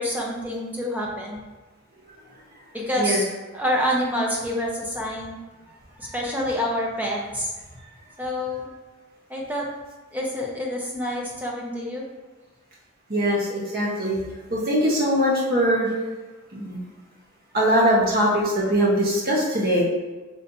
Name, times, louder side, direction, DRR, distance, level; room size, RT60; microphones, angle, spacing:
voice 1, 0.0-1.4 2.7-3.2 3.5-5.4 6.0-7.5 8.2-8.7 9.3-9.7 10.1-12.0, left 1 dB, 10° right, -2 dB, 0.7 m, -27 dB
voice 2, 13.1-14.2 14.5-15.9 16.5-16.8 17.5-19.8, equal, 45° right, -5 dB, 1.2 m, -21 dB
5.5 x 3.2 x 2.7 m, 1.3 s
head